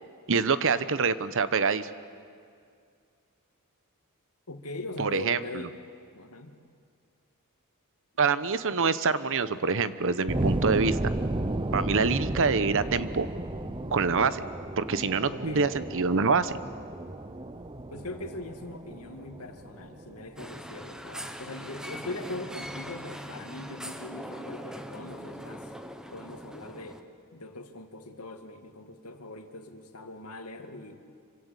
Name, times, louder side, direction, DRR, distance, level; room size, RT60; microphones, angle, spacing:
voice 1, 0.3-1.9 5.0-5.4 8.2-11.0 11.7-13.3 13.9-14.4 14.8-16.6, right 5 dB, 60° right, 14 dB, 1.0 m, -25 dB
voice 2, 4.5-5.7 6.1-6.6 15.3-15.7 17.9-25.7 26.1-27.0 27.3-30.9, left 2 dB, 85° left, 6 dB, 2.3 m, -41 dB
sound 1, 10.3-21.0, right 1 dB, 20° right, 0.8 m, -33 dB
sound 2, 20.4-27.0, equal, 5° right, 1.2 m, -41 dB
27.0 x 25.0 x 8.3 m, 2.3 s
head